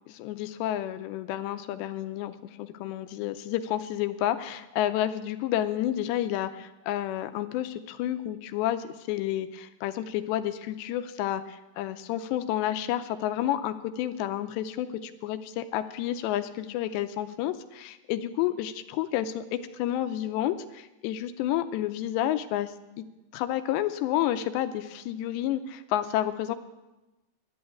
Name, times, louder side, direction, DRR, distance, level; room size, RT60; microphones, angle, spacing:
voice 1, 0.1-22.7 23.3-26.6, left 12 dB, 85° left, 10 dB, 2.8 m, -30 dB
11.5 x 8.7 x 9.2 m, 1.0 s
omnidirectional pair, 5.0 m